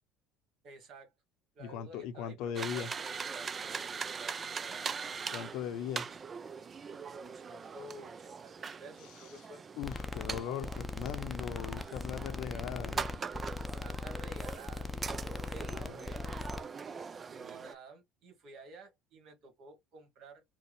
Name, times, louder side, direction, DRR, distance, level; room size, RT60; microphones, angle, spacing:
voice 1, 0.6-1.1 1.5-3.8 4.7-4.8 6.9-9.6 13.8-14.9 15.3-16.3 17.3-20.4, right 2 dB, 60° right, 1.5 m, -52 dB
voice 2, 1.6-2.9 5.3-6.1 9.8-13.0 15.7-16.0, left 8 dB, 65° left, 0.7 m, -39 dB
sound 1, 2.5-17.7, right 5 dB, 35° right, 0.4 m, -42 dB
sound 2, 9.8-16.6, left 3 dB, 15° left, 0.6 m, -39 dB
4.5 x 2.1 x 3.1 m
hypercardioid pair, 70°, 0 cm